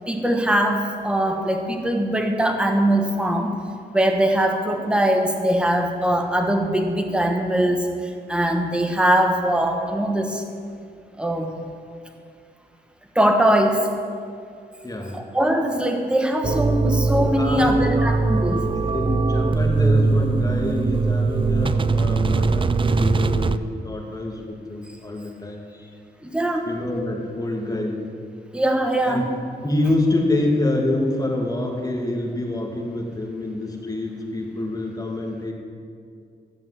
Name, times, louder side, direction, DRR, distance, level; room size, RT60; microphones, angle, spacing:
voice 1, 0.1-3.5 3.9-10.4 11.2-11.5 13.1-13.9 15.1-18.7 26.2-26.7 28.5-29.2, right 1 dB, 5° right, 3 dB, 1.4 m, -21 dB
voice 2, 14.8-15.2 17.4-18.2 18.6-25.9 26.7-28.1 29.0-29.2 29.6-35.5, left 1 dB, 20° left, 0 dB, 2.4 m, -26 dB
sound 1, 16.4-23.6, right 3 dB, 30° right, 0.4 m, -21 dB
14.0 x 7.3 x 7.8 m, 2.3 s
cardioid pair, 95°, 18 cm